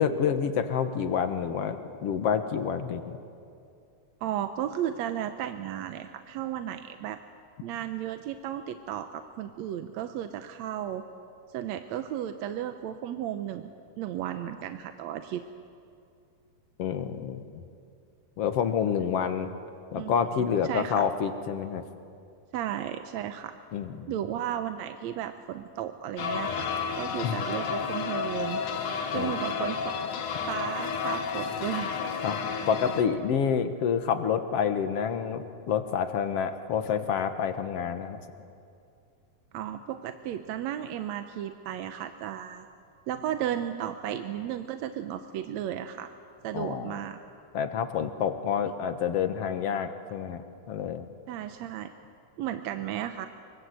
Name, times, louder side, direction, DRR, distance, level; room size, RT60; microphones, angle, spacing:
voice 1, 0.0-1.8 2.0-3.2 16.8-17.6 18.4-19.5 19.9-21.8 23.7-24.2 27.2-27.4 29.1-29.3 32.2-32.4 32.7-38.2 46.5-47.0 47.5-51.1, left 7 dB, 60° left, 8 dB, 2.1 m, -28 dB
voice 2, 4.2-7.2 7.6-11.0 11.5-13.7 14.0-15.4 19.9-20.1 20.6-21.1 22.5-23.6 24.1-26.7 27.0-28.8 29.1-29.9 30.5-31.9 39.5-42.7 43.1-46.1 46.4-47.2 51.3-51.9 52.4-53.3, right 10 dB, 70° right, 8 dB, 1.9 m, -34 dB
sound 1, 26.2-33.0, left 6 dB, 85° left, 3.1 m, -31 dB
25.5 x 24.5 x 8.1 m, 2.5 s
omnidirectional pair, 3.6 m